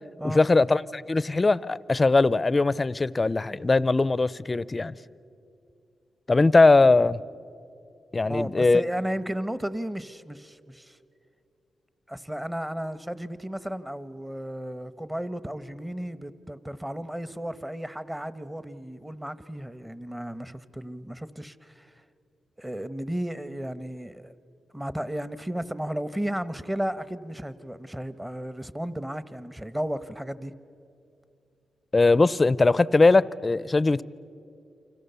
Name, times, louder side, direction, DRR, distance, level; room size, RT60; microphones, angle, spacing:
voice 1, 0.2-5.0 6.3-7.2 8.1-8.8 31.9-34.0, left 3 dB, 30° left, 0.6 m, -20 dB
voice 2, 8.2-11.0 12.1-21.9 22.6-24.3 24.7-30.5, equal, 10° right, 1.0 m, -34 dB
29.0 x 25.5 x 6.9 m
cardioid pair, 80°, 0 cm